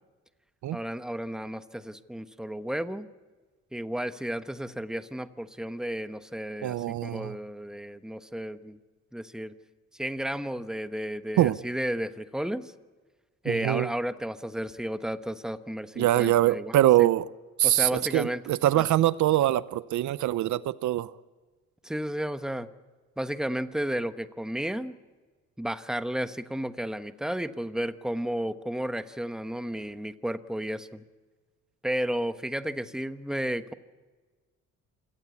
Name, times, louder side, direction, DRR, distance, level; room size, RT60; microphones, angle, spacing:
voice 1, 0.7-3.1 3.7-8.8 9.1-9.5 9.9-12.7 13.4-17.1 17.6-18.4 18.7-18.8 21.8-22.7 23.2-24.9 25.6-31.0 31.8-33.7, right 1 dB, ahead, 1.1 m, -33 dB
voice 2, 6.6-7.3 11.4-11.6 13.5-13.9 16.0-17.3 17.6-21.1, right 14 dB, 75° right, 0.7 m, -23 dB
27.0 x 18.0 x 8.4 m
cardioid pair, 90°, 30 cm